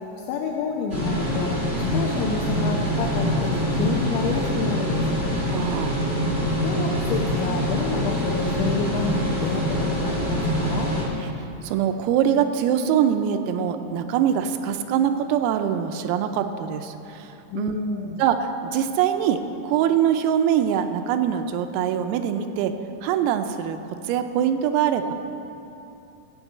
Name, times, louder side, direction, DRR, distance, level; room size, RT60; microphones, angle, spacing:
voice 1, 0.0-1.5 1.9-5.2 6.6-11.0 17.5-18.2, left 5 dB, 85° left, 0 dB, 2.7 m, -29 dB
sound 1, 0.9-11.0, equal, 40° right, 0.8 m, -24 dB
voice 2, 5.5-6.0 11.2-22.7 23.0-23.8 24.0-25.1, right 9 dB, 85° right, 7 dB, 3.2 m, -23 dB
15.5 x 5.4 x 8.0 m, 2.8 s
omnidirectional pair, 6.0 m